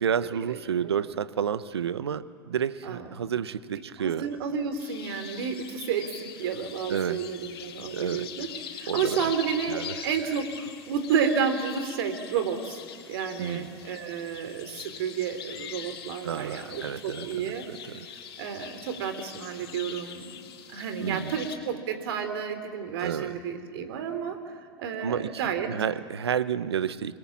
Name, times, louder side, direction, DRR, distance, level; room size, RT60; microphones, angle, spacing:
voice 1, 0.0-4.3 6.9-7.2 7.9-8.3 8.9-9.3 9.7-10.0 13.4-13.8 16.2-18.1 21.0-21.4 23.0-23.4 25.0-27.2, right 8 dB, 90° right, 16 dB, 0.9 m, -30 dB
voice 2, 4.0-8.5 8.7-12.8 13.1-17.6 18.4-20.3 20.7-24.4 24.8-25.7, right 7 dB, 70° right, 9 dB, 3.4 m, -31 dB
sound 1, 4.8-21.6, left 8 dB, 75° left, 3.0 m, -43 dB
30.0 x 21.0 x 7.3 m, 2.2 s
hypercardioid pair, 100°, 13 cm